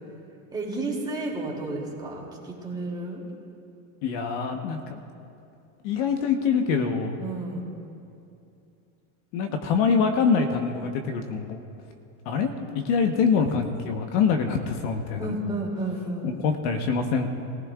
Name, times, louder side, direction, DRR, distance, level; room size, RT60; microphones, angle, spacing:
voice 1, 0.5-3.2 7.2-7.6 15.2-16.3, right 2 dB, 10° right, -3 dB, 2.9 m, -31 dB
voice 2, 4.0-5.0 5.8-7.1 9.3-11.6 12.2-12.5 12.8-15.4 16.2-17.3, left 5 dB, 55° left, 5 dB, 1.2 m, -24 dB
22.0 x 15.5 x 2.5 m, 2.6 s
supercardioid pair, 135°, 42 cm